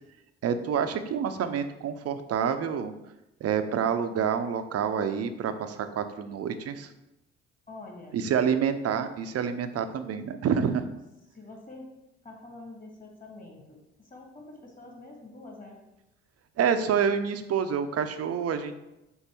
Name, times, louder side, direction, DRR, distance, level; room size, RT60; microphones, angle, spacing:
voice 1, 0.4-2.9 3.4-6.9 8.1-10.9 16.6-18.7, right 7 dB, 45° right, 9 dB, 0.7 m, -28 dB
voice 2, 7.7-8.2 11.3-11.9 12.2-15.8, left 2 dB, 25° left, 0 dB, 2.1 m, -46 dB
5.4 x 4.0 x 4.4 m, 0.93 s
hypercardioid pair, 50°, 35 cm